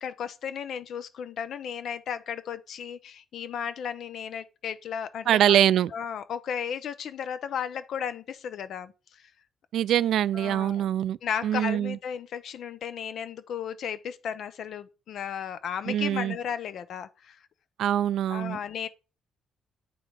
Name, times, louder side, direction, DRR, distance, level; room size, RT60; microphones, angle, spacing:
voice 1, 0.0-5.6 5.9-9.2 10.3-10.9 11.2-17.4 18.3-18.9, left 8 dB, 65° left, 0.8 m, -34 dB
voice 2, 5.3-5.9 9.7-11.2 11.4-12.0 15.9-16.4 17.8-18.6, right 11 dB, 75° right, 0.3 m, -23 dB
8.5 x 3.8 x 4.8 m
cardioid pair, 90°, 0 cm